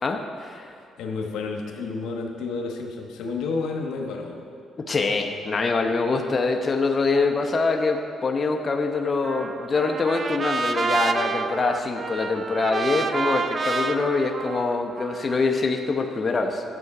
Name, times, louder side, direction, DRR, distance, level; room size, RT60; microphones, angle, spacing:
voice 1, 0.0-0.6 4.9-16.6, left 3 dB, 35° left, 3 dB, 0.8 m, -24 dB
voice 2, 1.0-4.5, left 4 dB, 85° left, 2 dB, 1.2 m, -30 dB
Trumpet, 9.2-15.5, right 4 dB, 40° right, 0.5 m, -28 dB
12.5 x 7.7 x 4.9 m, 2.4 s
cardioid pair, 90°, 0 cm